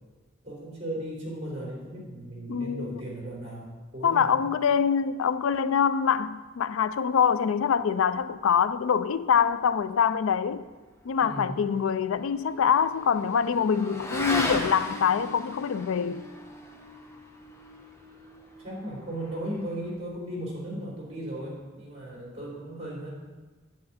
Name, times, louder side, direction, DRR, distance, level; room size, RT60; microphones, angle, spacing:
voice 1, 0.4-4.3 11.2-11.6 18.6-23.1, right 1 dB, 35° right, 3.5 m, -36 dB
voice 2, 2.5-3.0 4.0-10.7 11.1-16.3, left 7 dB, 90° left, 0.4 m, -25 dB
Motorcycle / Accelerating revving vroom, 11.3-20.1, left 1 dB, 15° left, 0.9 m, -38 dB
8.9 x 8.5 x 4.2 m
head